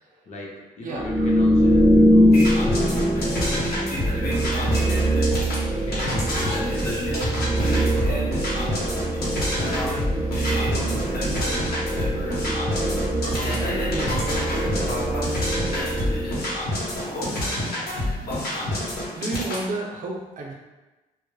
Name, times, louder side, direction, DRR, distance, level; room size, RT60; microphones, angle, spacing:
voice 1, 0.3-2.4 2.8-8.5 9.1-10.3 10.7-14.9 15.7-16.4 17.1-18.1, left 1 dB, 50° left, -2 dB, 0.6 m, -37 dB
voice 2, 0.8-1.3 19.2-20.5, right 2 dB, 60° right, -1 dB, 0.6 m, -31 dB
sound 1, 1.0-16.7, equal, 5° right, 0.3 m, -23 dB
sound 2, 2.3-19.7, left 1 dB, 80° left, 0.9 m, -28 dB
2.1 x 2.0 x 3.1 m, 1.1 s
cardioid pair, 80°, 16 cm